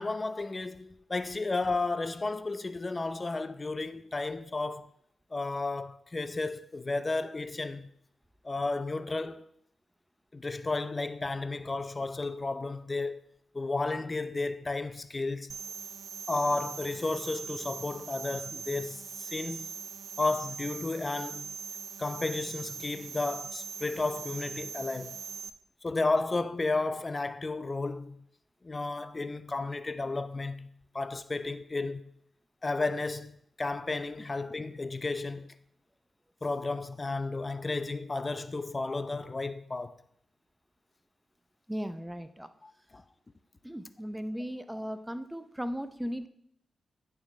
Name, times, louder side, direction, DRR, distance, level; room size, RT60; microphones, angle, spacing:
voice 1, 0.0-4.9 5.3-7.9 8.4-9.5 10.3-13.2 13.5-15.6 16.3-19.7 20.2-21.5 22.0-25.2 25.8-28.2 28.6-32.1 32.6-35.5 36.4-40.0 42.6-43.0, left 3 dB, 35° left, 0.5 m, -33 dB
sound 1, 15.5-25.5, right 6 dB, 70° right, 0.4 m, -41 dB
voice 2, 41.7-42.5 43.6-46.3, equal, 10° right, 0.6 m, -37 dB
9.2 x 6.0 x 3.2 m
cardioid pair, 55°, 0 cm